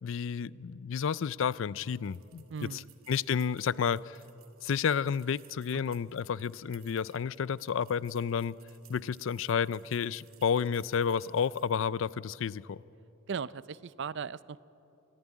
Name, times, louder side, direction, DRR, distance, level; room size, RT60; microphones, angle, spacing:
voice 1, 0.0-2.4 2.7-2.8 3.1-4.2 4.6-8.6 8.9-12.8, left 7 dB, 65° left, 20 dB, 0.4 m, -31 dB
sound 1, 1.8-11.9, right 13 dB, 80° right, 2.0 m, -61 dB
voice 2, 2.5-2.9 5.7-5.8 13.3-14.7, right 6 dB, 60° right, 18 dB, 0.5 m, -38 dB
24.5 x 15.0 x 9.8 m, 3.0 s
head